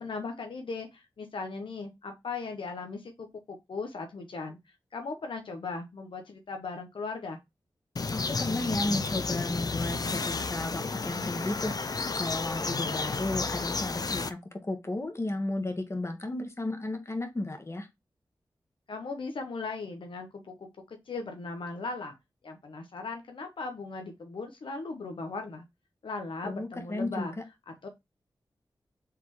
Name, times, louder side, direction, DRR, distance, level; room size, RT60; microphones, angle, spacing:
voice 1, 0.0-4.6 4.9-7.4 18.9-22.1 22.4-25.6 26.0-27.4 27.7-27.9, left 3 dB, 80° left, 0.9 m, -38 dB
sound 1, 8.0-14.3, left 4 dB, 45° left, 0.5 m, -32 dB
voice 2, 8.1-17.9 26.4-27.3, left 2 dB, 30° left, 1.4 m, -34 dB
4.8 x 3.5 x 3.0 m
cardioid pair, 45°, 9 cm